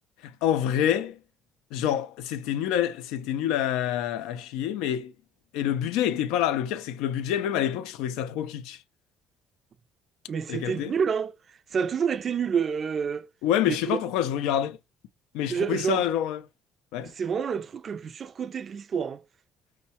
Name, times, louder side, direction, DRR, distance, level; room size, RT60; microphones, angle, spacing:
voice 1, 0.2-1.2 1.7-5.1 5.5-8.8 10.5-11.0 13.4-14.8 15.3-16.4 16.9-17.1, left 10 dB, 80° left, 0.4 m, -27 dB
voice 2, 10.3-11.3 11.7-13.3 13.7-14.0 15.5-16.0 17.2-19.2, right 6 dB, 45° right, 0.4 m, -28 dB
4.5 x 2.1 x 2.7 m
supercardioid pair, 75°, 0 cm